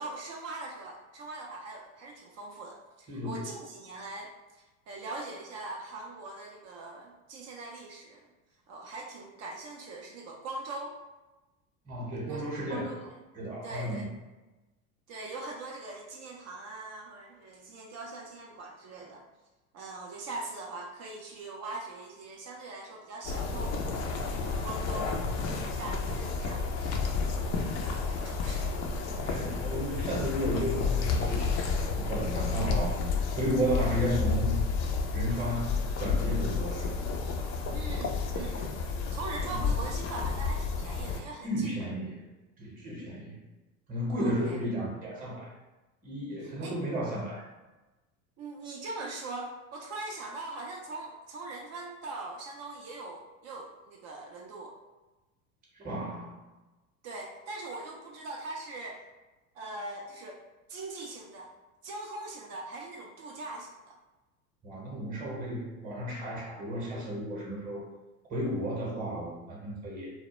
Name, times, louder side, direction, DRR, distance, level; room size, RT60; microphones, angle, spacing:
voice 1, 0.0-8.3 8.7-11.0 12.3-13.2 13.6-14.1 15.1-19.2 19.7-24.0 24.4-25.2 25.5-27.0 27.3-27.8 28.1-28.7 37.7-38.8 39.1-41.8 44.1-44.6 46.4-46.8 48.4-54.7 57.0-59.0 59.5-60.4 60.7-61.5 61.8-64.0, right 2 dB, 40° right, 0 dB, 0.4 m, -41 dB
voice 2, 3.1-3.4 11.9-12.9 13.3-14.1 29.2-31.6 32.0-33.0 33.4-34.6 35.1-36.9 39.5-39.7 41.4-42.2 42.6-43.4 43.9-45.5 46.0-47.5 55.8-56.3 64.6-67.9 68.3-70.1, equal, 20° right, -4 dB, 0.8 m, -33 dB
sound 1, 23.2-41.2, left 4 dB, 40° left, 0.4 m, -31 dB
2.2 x 2.1 x 2.9 m, 1.1 s
hypercardioid pair, 90°, 41 cm